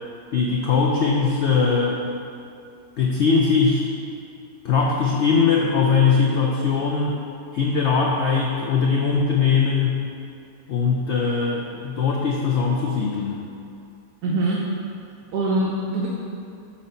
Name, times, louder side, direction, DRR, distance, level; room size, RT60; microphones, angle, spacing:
voice 1, 0.3-2.1 3.0-3.8 4.6-7.2 7.5-10.0 10.7-13.4, left 5 dB, 85° left, -1 dB, 0.6 m, -20 dB
voice 2, 14.2-14.6 15.3-16.1, right 2 dB, 70° right, -4 dB, 1.1 m, -23 dB
7.4 x 2.8 x 5.4 m, 2.5 s
omnidirectional pair, 1.7 m